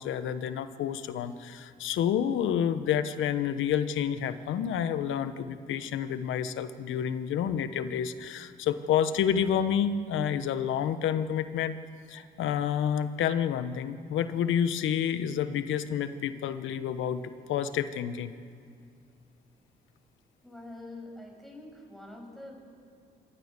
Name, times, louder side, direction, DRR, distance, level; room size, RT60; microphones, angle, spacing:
voice 1, 0.0-11.8 12.1-17.2 17.5-18.3, left 9 dB, 80° left, 12 dB, 1.1 m, -29 dB
voice 2, 20.4-22.5, left 2 dB, ahead, -1 dB, 7.0 m, -45 dB
25.0 x 18.5 x 6.8 m, 2.2 s
cardioid pair, 90°, 20 cm